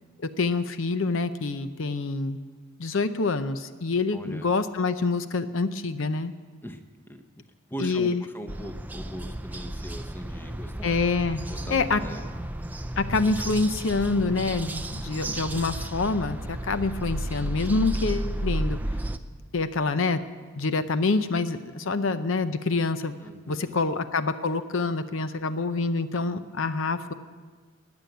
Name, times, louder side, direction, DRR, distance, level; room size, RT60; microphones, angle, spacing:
voice 1, 0.2-2.4 2.8-6.3 7.8-8.2 10.8-11.4 11.7-12.0 13.0-18.8 19.5-20.2 20.5-23.2 23.5-27.1, left 3 dB, 65° left, 11 dB, 0.6 m, -26 dB
voice 2, 4.1-4.5 6.6-6.8 7.1-7.4 7.7-11.0 11.5-12.2 23.2-23.9, equal, 10° left, 7 dB, 0.8 m, -40 dB
sound 1, 8.5-19.2, right 1 dB, 10° right, 0.5 m, -33 dB
20.0 x 7.1 x 9.2 m, 1.5 s
head